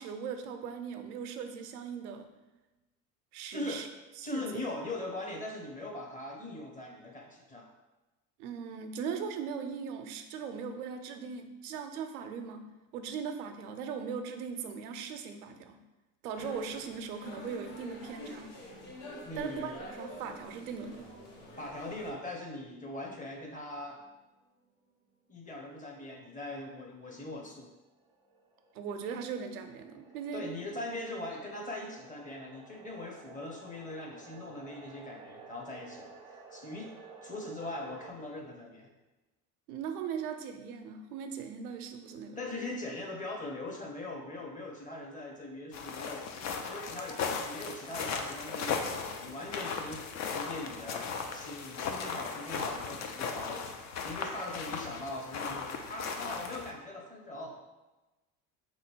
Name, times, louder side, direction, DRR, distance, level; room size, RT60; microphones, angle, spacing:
voice 1, 0.0-2.3 3.3-3.9 4.2-4.6 8.4-15.8 16.2-18.5 19.4-21.1 28.7-30.5 39.7-42.7, right 6 dB, 85° right, 7 dB, 0.6 m, -39 dB
voice 2, 3.5-3.9 4.2-7.7 19.2-19.8 21.6-24.0 25.3-27.7 30.3-36.9 37.2-38.9 42.4-46.3 46.6-57.6, left 2 dB, 20° left, 1 dB, 1.0 m, -41 dB
sound 1, 16.3-22.1, equal, 80° left, 1.4 m, -46 dB
sound 2, 23.8-26.4 26.7-26.8 27.5-38.1, right 4 dB, 10° right, 0.4 m, -54 dB
sound 3, 45.7-56.7, left 5 dB, 40° left, 0.6 m, -37 dB
3.8 x 3.0 x 4.4 m, 1.1 s
hypercardioid pair, 85°, 43 cm